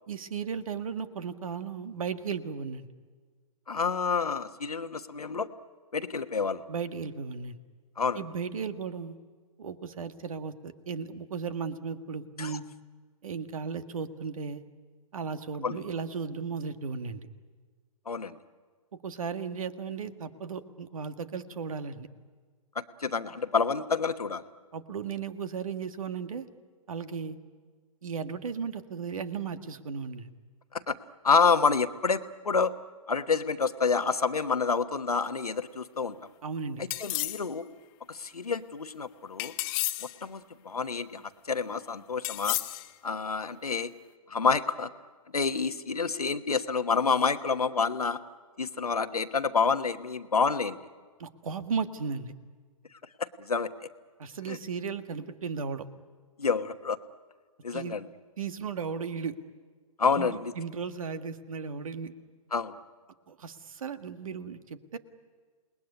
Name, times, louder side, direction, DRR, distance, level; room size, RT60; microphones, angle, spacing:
voice 1, 0.1-2.9 6.7-7.6 8.2-9.2 9.6-12.6 13.2-14.6 15.1-17.3 19.0-22.1 24.7-26.5 26.9-27.4 28.0-30.3 36.4-36.8 51.2-52.3 54.2-55.9 57.7-58.0 58.4-59.3 60.1-62.1 63.3-65.0, right 6 dB, 65° right, 10 dB, 1.8 m, -35 dB
voice 2, 3.7-5.5 5.9-6.7 8.0-8.2 12.4-12.6 15.6-15.8 18.1-18.4 22.7-24.4 30.7-31.0 31.2-32.7 33.1-36.2 36.8-37.7 38.1-39.5 40.2-42.6 43.0-43.9 44.3-44.9 45.3-48.2 48.6-50.8 53.2-53.9 54.5-54.6 56.4-57.0 57.6-58.1 60.0-60.5 62.5-62.7, left 5 dB, 85° left, 10 dB, 1.3 m, -28 dB
sound 1, 36.9-37.5 39.4-40.2 42.2-42.9, left 19 dB, 35° left, 1.3 m, -32 dB
28.0 x 20.0 x 9.8 m, 1.5 s
figure-of-eight pair, 125°, 19 cm